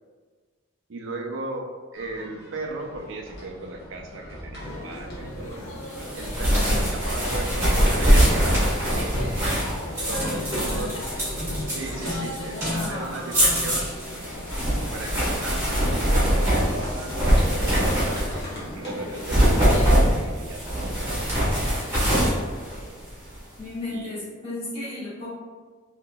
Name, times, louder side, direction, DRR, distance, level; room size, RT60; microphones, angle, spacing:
voice 1, 0.9-5.6 6.1-8.8 10.1-11.0 11.7-13.9 14.7-18.2 18.8-21.4 23.9-24.2, right 2 dB, 65° right, 3 dB, 0.4 m, -36 dB
sound 1, 1.9-9.9 10.2-20.8, equal, 50° left, 1.0 m, -41 dB
sound 2, 4.6-19.9, left 1 dB, 85° left, 0.5 m, -39 dB
sound 3, 5.9-18.6 19.1-23.4, equal, 15° right, 1.3 m, -23 dB
voice 2, 6.5-6.9 10.1-11.0 12.7-14.0 23.6-25.3, left 2 dB, 30° left, -10 dB, 1.4 m, -35 dB
3.9 x 2.7 x 2.2 m, 1.5 s
head